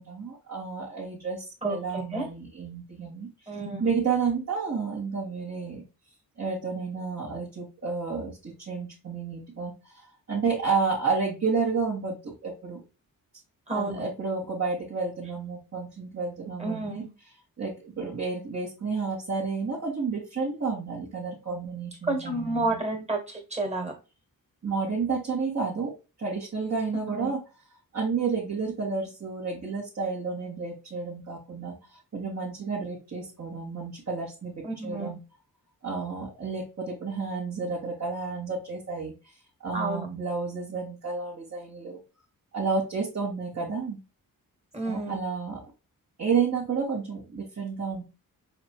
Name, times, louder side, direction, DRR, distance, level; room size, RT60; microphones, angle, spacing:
voice 1, 0.0-3.3 3.8-5.8 6.4-12.8 13.7-17.0 17.6-22.8 24.6-27.4 27.9-31.7 32.1-34.5 34.8-35.2 35.8-39.1 39.6-42.0 42.5-44.0 44.8-45.6 46.2-48.0, right 5 dB, 45° right, -5 dB, 2.0 m, -31 dB
voice 2, 1.6-2.3 3.5-3.8 13.7-14.0 16.6-17.1 22.0-23.9 27.0-27.3 34.6-35.1 39.7-40.1 44.7-45.2, right 2 dB, 20° right, 2 dB, 1.7 m, -30 dB
5.0 x 4.3 x 2.3 m, 0.29 s
cardioid pair, 85°, 35 cm